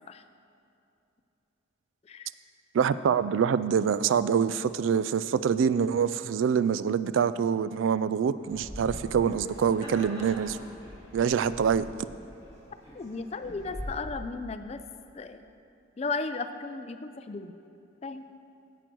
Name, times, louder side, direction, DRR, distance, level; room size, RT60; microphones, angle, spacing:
voice 1, 2.7-10.6 11.1-11.9, right 7 dB, 80° right, 15 dB, 0.3 m, -25 dB
sound 1, 8.4-13.9, equal, 30° right, 2.6 m, -43 dB
voice 2, 12.9-14.8 15.1-15.5 16.0-17.5 18.0-18.3, left 3 dB, 35° left, 10 dB, 0.4 m, -35 dB
10.5 x 7.9 x 4.6 m, 2.7 s
head